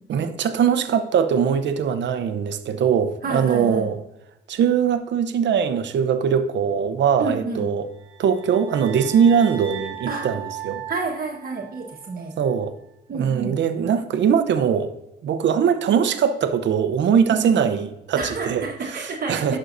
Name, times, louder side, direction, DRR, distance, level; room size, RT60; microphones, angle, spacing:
voice 1, 0.1-4.0 4.5-7.9 8.2-10.8 12.4-12.7 13.1-14.9 15.2-19.6, right 7 dB, 65° right, 9 dB, 0.8 m, -21 dB
voice 2, 3.2-3.9 7.2-7.6 10.1-10.3 10.9-12.3 13.1-13.5 17.3-17.6 18.1-19.6, right 3 dB, 50° right, -1 dB, 1.5 m, -29 dB
sound 1, 7.9-12.2, right 10 dB, 85° right, 1.4 m, -37 dB
11.0 x 6.4 x 2.7 m, 0.87 s
cardioid pair, 90°, 20 cm